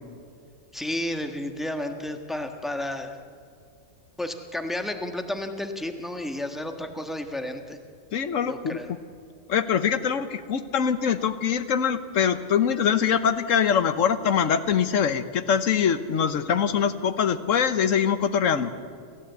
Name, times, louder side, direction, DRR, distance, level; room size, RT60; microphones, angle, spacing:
voice 1, 0.7-3.2 4.2-7.8 8.4-8.9, left 1 dB, ahead, 5 dB, 1.3 m, -32 dB
voice 2, 8.1-8.8 9.5-18.7, left 7 dB, 90° left, 12 dB, 1.3 m, -23 dB
29.0 x 14.0 x 8.0 m, 2.3 s
omnidirectional pair, 1.3 m